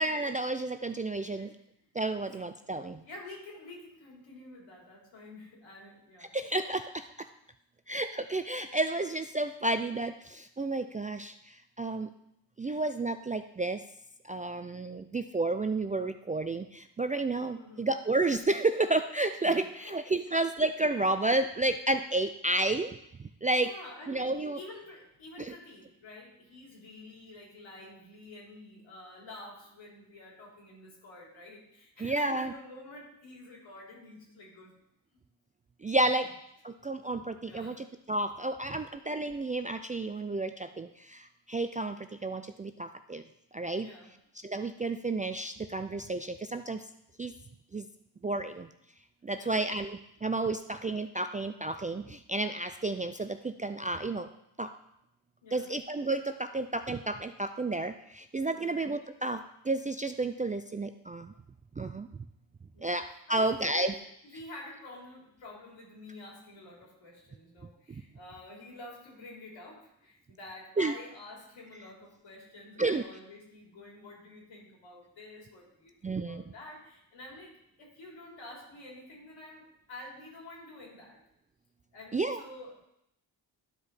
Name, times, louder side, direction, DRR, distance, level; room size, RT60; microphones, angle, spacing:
voice 1, 0.0-1.5 1.9-3.0 6.3-7.1 7.9-12.1 12.6-13.8 14.2-23.7 24.1-24.6 25.4-25.5 32.0-32.5 35.8-36.3 36.6-43.2 43.5-43.9 44.4-46.8 47.2-47.3 47.7-47.9 48.2-48.7 49.2-54.3 54.6-54.7 55.5-61.3 61.8-62.1 62.8-63.9 70.8-70.9 72.8-73.0 76.0-76.5 82.1-82.4, right 2 dB, 20° right, 8 dB, 0.3 m, -31 dB
voice 2, 3.0-6.3 9.4-9.5 17.6-17.9 19.4-20.2 23.5-34.8 37.4-37.8 43.8-44.1 49.3-49.6 55.4-55.7 58.5-58.8 62.7-63.0 63.3-81.2 81.9-82.9, left 2 dB, 75° left, -3 dB, 3.7 m, -49 dB
12.0 x 5.1 x 4.1 m, 0.78 s
cardioid pair, 75°, 47 cm